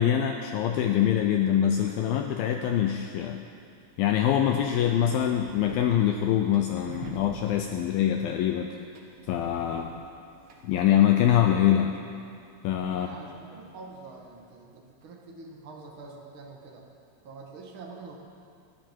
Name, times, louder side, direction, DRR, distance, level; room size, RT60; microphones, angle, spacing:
voice 1, 0.0-3.4 4.0-8.8 9.3-10.0 10.6-11.9 12.6-13.1, left 10 dB, 90° left, 4 dB, 2.0 m, -24 dB
sound 1, 3.4-14.4, right 3 dB, 90° right, 1.2 m, -49 dB
voice 2, 12.9-16.9 17.2-18.2, right 3 dB, 60° right, 0 dB, 1.3 m, -45 dB
22.0 x 13.5 x 4.6 m, 2.4 s
omnidirectional pair, 5.0 m